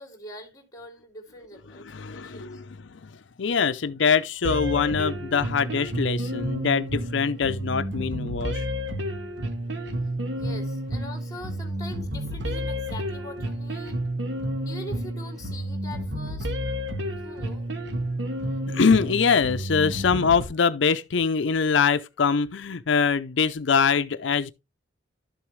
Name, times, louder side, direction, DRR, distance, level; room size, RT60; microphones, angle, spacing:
voice 1, 0.0-2.6 10.4-14.0 14.6-16.5 17.2-17.7, left 1 dB, 20° left, 2.9 m, -42 dB
voice 2, 1.9-3.1 3.4-8.7 18.7-24.5, left 5 dB, 85° left, 0.6 m, -23 dB
sound 1, 4.4-20.4, equal, 75° right, 1.7 m, -30 dB
12.0 x 7.0 x 3.2 m
head